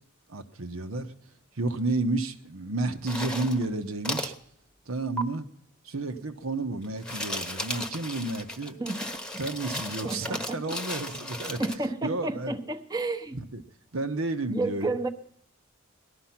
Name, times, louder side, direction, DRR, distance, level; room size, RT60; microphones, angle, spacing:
voice 1, 0.3-1.1 1.5-4.3 4.9-5.5 5.8-8.8 9.4-11.6 12.0-12.6 13.3-13.6 13.9-15.0, right 2 dB, 80° right, 7 dB, 1.1 m, -31 dB
sound 1, 3.0-3.7 4.0-4.4 5.2-5.3 6.8-11.8, left 1 dB, 5° left, 1.1 m, -35 dB
voice 2, 8.8-9.4 10.0-10.8 11.6-13.4 14.5-15.1, right 2 dB, 20° right, 6 dB, 0.9 m, -31 dB
18.5 x 12.0 x 5.9 m, 0.66 s
head